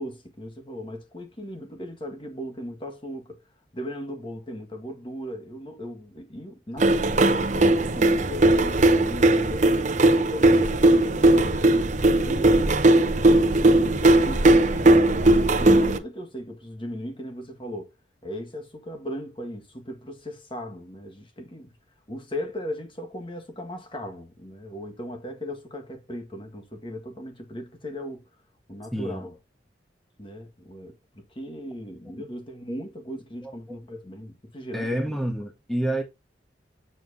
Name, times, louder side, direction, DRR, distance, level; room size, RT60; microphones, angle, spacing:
voice 1, 0.0-3.4 3.7-11.6 12.1-12.7 13.2-17.9 18.2-21.7 22.1-28.3 28.7-29.4 30.2-35.2, equal, 30° left, 1.9 m, -38 dB
sound 1, 6.8-16.0, right 2 dB, 40° right, 0.8 m, -18 dB
voice 2, 28.9-29.3 32.1-32.2 33.4-33.8 34.7-36.0, right 1 dB, ahead, 1.4 m, -29 dB
7.6 x 7.4 x 2.8 m
head